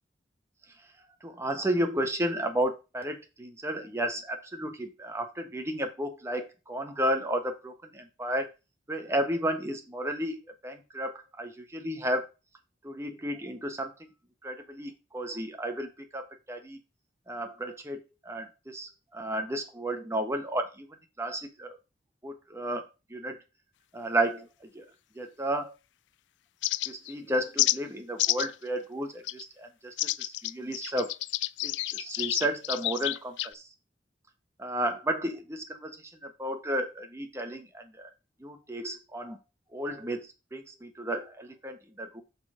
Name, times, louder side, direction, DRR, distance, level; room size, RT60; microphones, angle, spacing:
voice 1, 1.2-8.5 8.9-10.4 10.6-12.3 12.8-14.1 14.4-16.8 17.3-21.8 22.2-23.4 23.9-24.8 25.1-25.7 26.8-31.2 31.6-33.7 34.6-38.1 38.4-39.4 39.7-42.2, right 1 dB, 15° right, 5 dB, 1.3 m, -33 dB
sound 1, 26.6-27.1 27.6-27.8 28.2-28.5 29.2-29.4 30.0-33.5, left 16 dB, 85° left, 0.3 m, -29 dB
6.5 x 5.8 x 5.0 m, 0.28 s
head